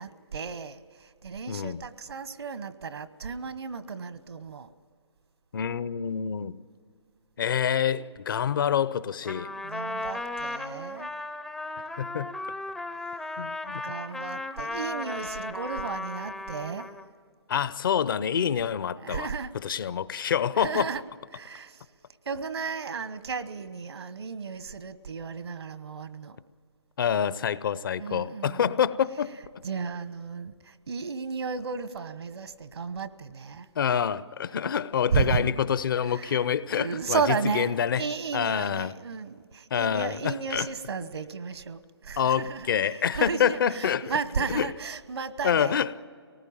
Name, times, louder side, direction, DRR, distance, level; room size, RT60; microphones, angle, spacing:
voice 1, 0.0-4.7 9.6-11.1 13.0-13.3 13.8-16.9 19.0-19.5 20.5-21.0 21.3-21.8 22.2-26.4 28.0-28.7 29.6-33.7 34.5-34.6 35.1-35.6 36.1-36.5 36.7-45.8, right 5 dB, 70° right, 1.2 m, -33 dB
voice 2, 1.5-1.8 5.5-6.6 7.4-9.5 12.0-12.3 13.4-13.8 17.5-19.3 19.6-20.9 27.0-29.3 33.8-37.2 37.5-38.0 38.3-38.9 39.7-40.7 42.2-44.7 45.4-46.1, left 8 dB, 50° left, 0.7 m, -27 dB
Trumpet, 9.2-17.1, left 2 dB, 5° left, 0.5 m, -36 dB
23.5 x 19.0 x 8.7 m
figure-of-eight pair, 145°, 14 cm